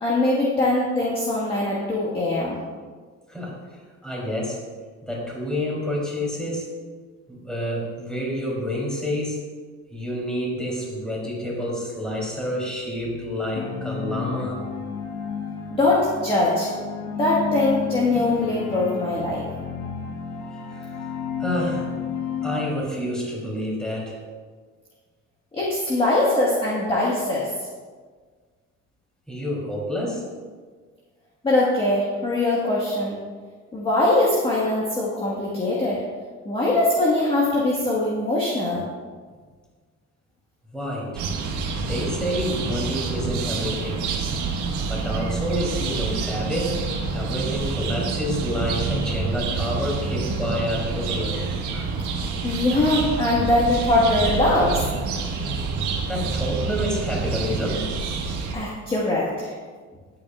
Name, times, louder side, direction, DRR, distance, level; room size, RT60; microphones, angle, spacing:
voice 1, 0.0-2.6 15.7-16.7 17.1-19.4 25.5-27.5 31.4-33.2 33.7-36.0 36.4-38.8 52.4-54.8 58.5-59.5, left 2 dB, 20° left, -5 dB, 1.6 m, -22 dB
voice 2, 3.3-3.6 4.0-4.6 5.0-6.7 7.3-9.4 9.9-14.6 20.7-20.9 21.4-22.2 22.4-24.2 29.3-30.2 40.7-41.2 41.8-44.0 44.8-46.8 47.1-51.3 51.7-51.8 56.0-57.9, equal, ahead, -4 dB, 3.4 m, -28 dB
sound 1, 13.6-22.7, left 6 dB, 85° left, 1.4 m, -32 dB
sound 2, 41.2-58.6, right 4 dB, 80° right, 1.6 m, -27 dB
19.0 x 8.6 x 2.5 m, 1.5 s
cardioid pair, 160°, 30 cm